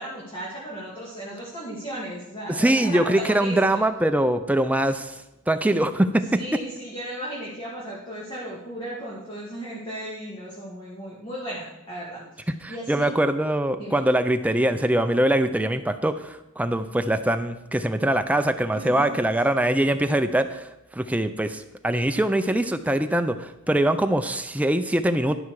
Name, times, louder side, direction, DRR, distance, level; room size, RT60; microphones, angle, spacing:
voice 1, 0.0-3.8 6.3-12.2 12.7-13.1 13.8-14.0 18.7-19.1, right 1 dB, 25° left, -6 dB, 2.1 m, -35 dB
voice 2, 2.5-5.2 5.5-6.4 12.6-25.4, right 1 dB, 5° right, 8 dB, 0.4 m, -23 dB
12.0 x 5.7 x 4.8 m, 0.91 s
head